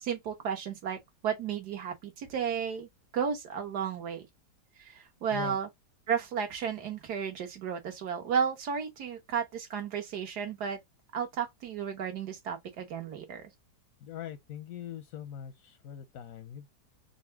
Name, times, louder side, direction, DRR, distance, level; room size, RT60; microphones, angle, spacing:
voice 1, 0.0-2.9 3.1-4.3 4.8-5.7 6.1-10.8 11.1-13.5, right 7 dB, 65° right, 1.7 m, -33 dB
voice 2, 14.0-16.7, left 9 dB, 65° left, 0.9 m, -42 dB
4.1 x 2.4 x 4.4 m
omnidirectional pair, 1.9 m